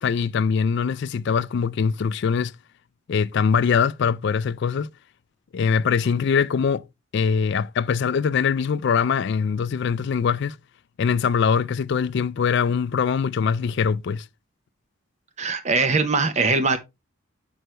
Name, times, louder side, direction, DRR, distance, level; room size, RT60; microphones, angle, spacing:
voice 1, 0.0-2.5 3.1-4.9 5.5-6.8 7.1-10.6 11.0-14.2, left 6 dB, 55° left, 0.3 m, -22 dB
voice 2, 15.4-16.8, right 4 dB, 30° right, 0.8 m, -21 dB
7.7 x 6.3 x 3.2 m
head